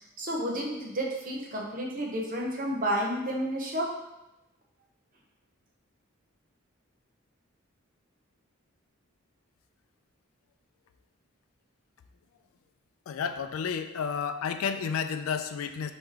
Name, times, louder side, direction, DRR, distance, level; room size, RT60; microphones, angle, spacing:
voice 1, 0.2-4.0, equal, 40° right, -2 dB, 0.8 m, -31 dB
voice 2, 13.1-15.9, left 6 dB, 80° left, 9 dB, 0.3 m, -31 dB
4.7 x 3.0 x 3.6 m, 0.99 s
head